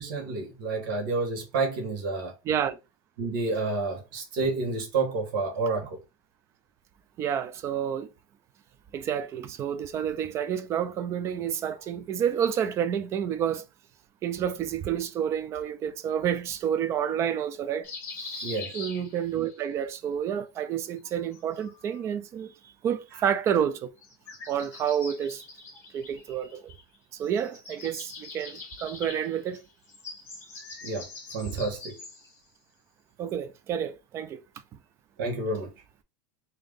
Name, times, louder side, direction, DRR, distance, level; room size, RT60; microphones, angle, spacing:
voice 1, 0.0-2.3 3.2-6.0 18.4-18.8 30.8-31.1 31.3-31.9 35.2-35.7, right 3 dB, 65° right, 1.3 m, -29 dB
voice 2, 2.4-2.8 7.2-8.1 8.9-13.6 14.2-17.9 18.3-22.5 22.8-23.9 24.5-25.4 25.9-26.7 27.1-29.6 33.2-34.4, right 9 dB, 20° right, 0.3 m, -29 dB
sound 1, 17.8-19.6 21.0-22.0 24.0-27.0 27.2-32.4, left 4 dB, 20° left, 1.5 m, -43 dB
3.5 x 2.7 x 3.4 m
supercardioid pair, 170°, 12 cm